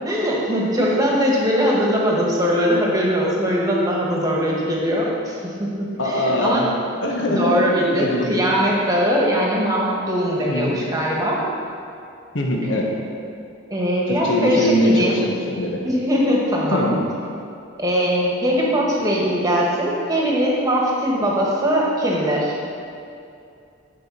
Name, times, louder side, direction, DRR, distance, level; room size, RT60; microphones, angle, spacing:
voice 1, 0.0-6.6 7.3-11.4 13.7-15.2 15.8-16.9 17.8-22.5, equal, 15° right, -4 dB, 1.4 m, -21 dB
voice 2, 6.0-6.7 7.0-7.6 8.0-8.5 10.5-10.8 12.3-12.9 14.1-15.8 16.7-17.0, left 1 dB, 65° left, 0 dB, 1.2 m, -21 dB
10.0 x 4.9 x 5.4 m, 2.5 s
head